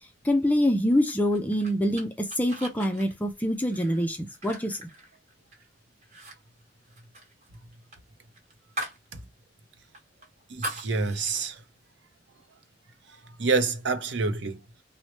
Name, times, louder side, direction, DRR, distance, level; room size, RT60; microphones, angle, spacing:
voice 1, 0.2-4.8, equal, 10° left, 0.3 m, -25 dB
sound 1, 1.0-5.7 6.0-6.4 6.6-9.1 9.4-9.5 9.9-11.5, right 1 dB, 40° right, 1.0 m, -40 dB
voice 2, 10.5-11.6 13.4-14.6, right 4 dB, 70° right, 0.6 m, -27 dB
3.0 x 2.1 x 4.0 m
head